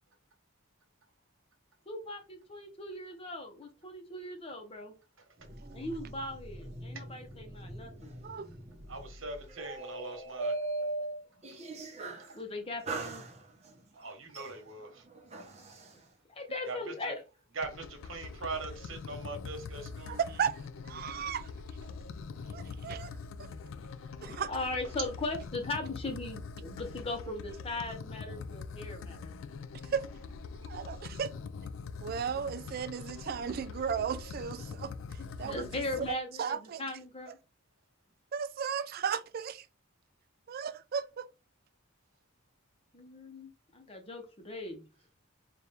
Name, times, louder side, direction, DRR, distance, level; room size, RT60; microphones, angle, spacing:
voice 1, 1.9-4.9 5.7-8.1 12.3-13.2 16.3-17.2 24.5-29.3 35.2-37.4 42.9-44.8, left 2 dB, 30° left, 0.8 m, -39 dB
sound 1, 5.4-12.4 12.9-13.8 14.3-15.9, right 2 dB, 30° right, 0.8 m, -40 dB
voice 2, 8.9-10.5 13.9-15.0 16.7-17.1 17.5-20.2 21.9-22.0 22.6-22.7 30.6-30.7, right 3 dB, 75° right, 1.3 m, -41 dB
sound 2, 17.6-36.1, left 4 dB, 70° left, 0.3 m, -43 dB
voice 3, 20.1-20.6 20.9-21.5 22.5-23.1 24.2-24.5 29.9-30.0 30.7-31.3 32.0-34.9 35.4-35.7 36.0-36.8 38.3-39.6 40.5-41.3, right 7 dB, 50° right, 0.3 m, -35 dB
4.3 x 2.5 x 3.4 m
head